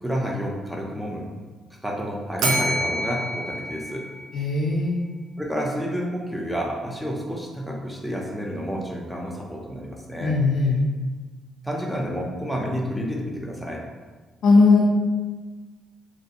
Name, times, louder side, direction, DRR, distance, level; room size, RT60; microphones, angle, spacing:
voice 1, 0.0-1.3 1.8-4.1 5.4-10.4 11.6-13.8, equal, 5° right, -1 dB, 0.5 m, -29 dB
Bell, 2.4-4.7, right 1 dB, 90° right, 0.4 m, -28 dB
voice 2, 4.3-5.0 10.2-10.8 14.4-14.9, left 3 dB, 70° left, -3 dB, 0.3 m, -18 dB
2.5 x 2.3 x 2.7 m, 1.3 s
cardioid pair, 90°, 0 cm